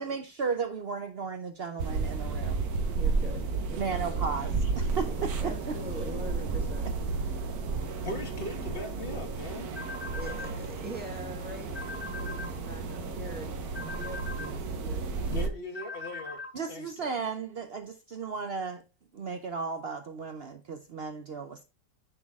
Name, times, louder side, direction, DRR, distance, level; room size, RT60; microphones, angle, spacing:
voice 1, 0.0-2.7 3.8-5.5 16.5-18.8 19.1-21.6, right 5 dB, 80° right, 0.5 m, -35 dB
sound 1, 1.8-15.5, right 4 dB, 60° right, 1.4 m, -32 dB
voice 2, 3.0-4.4 5.1-6.9 7.3-7.5 10.1-15.0 15.4-15.5, equal, 5° right, 1.7 m, -44 dB
voice 3, 8.0-9.7 15.3-16.4 16.7-17.1, left 2 dB, 35° left, 1.2 m, -39 dB
sound 2, 9.8-10.5 11.8-12.5 13.8-14.5 15.8-16.5, left 3 dB, 90° left, 4.9 m, -40 dB
10.0 x 4.1 x 3.5 m
omnidirectional pair, 2.0 m